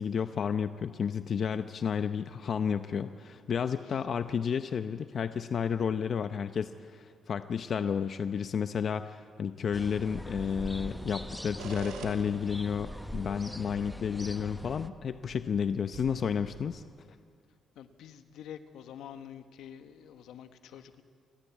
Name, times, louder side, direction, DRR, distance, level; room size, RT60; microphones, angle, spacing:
voice 1, 0.0-16.8, left 7 dB, 55° left, 10 dB, 0.7 m, -31 dB
sound 1, 9.7-14.9, equal, ahead, 0.8 m, -42 dB
sound 2, 11.6-16.6, right 5 dB, 90° right, 2.8 m, -47 dB
voice 2, 17.7-21.0, left 9 dB, 80° left, 9 dB, 1.3 m, -47 dB
28.0 x 15.0 x 8.5 m, 2.3 s
cardioid pair, 90°, 0 cm